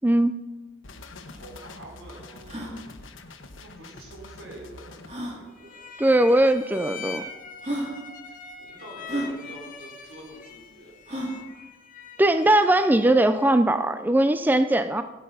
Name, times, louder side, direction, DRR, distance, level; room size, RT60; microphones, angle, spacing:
voice 1, 0.0-0.4 6.0-7.2 12.2-15.0, right 1 dB, 10° right, 10 dB, 0.3 m, -20 dB
sound 1, 0.8-5.1, left 2 dB, 70° left, 1.1 m, -45 dB
sound 2, 0.9-1.0 1.1-1.2 1.8-1.9 2.4-2.7 4.1-4.2 5.0-5.4 6.4-6.5 7.2-7.3 7.6-7.9 9.0-9.3 11.1-11.4, right 1 dB, 30° right, 3.0 m, -31 dB
voice 2, 1.2-2.8 3.6-5.0 5.3-5.9 8.3-10.9, right 1 dB, 80° right, -1 dB, 4.3 m, -46 dB
sound 3, 5.5-13.7, left 5 dB, 40° left, 1.1 m, -43 dB
16.5 x 8.6 x 5.6 m, 1.2 s
head